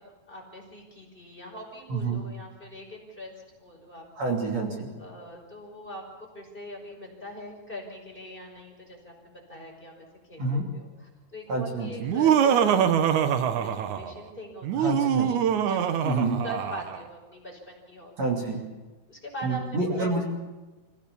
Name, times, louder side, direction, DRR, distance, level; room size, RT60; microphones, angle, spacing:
voice 1, 0.3-3.3 3.6-4.4 5.0-16.2 16.4-18.3 19.1-20.2, equal, 15° left, 0 dB, 5.4 m, -42 dB
voice 2, 1.9-2.2 4.2-4.9 10.4-10.6 11.5-11.9 14.7-15.3 16.0-16.4 18.2-18.6 19.4-20.2, right 2 dB, 50° right, -1 dB, 3.9 m, -28 dB
Laughter, 12.0-14.2 14.6-17.0, right 8 dB, 65° right, 2.3 m, -24 dB
26.0 x 17.0 x 7.1 m, 1.2 s
omnidirectional pair, 4.1 m